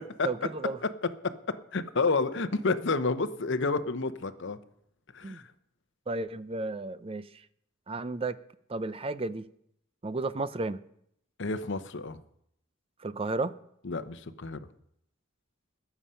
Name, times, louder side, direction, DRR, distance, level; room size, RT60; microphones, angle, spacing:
voice 1, 0.2-0.8 5.2-5.4 6.1-7.4 7.9-8.4 8.7-9.5 10.0-10.8 13.0-13.5, right 3 dB, 25° right, 0.5 m, -33 dB
voice 2, 1.2-4.6 5.1-5.4 11.4-12.2 13.8-14.6, left 3 dB, 60° left, 0.8 m, -30 dB
20.0 x 7.1 x 5.6 m
head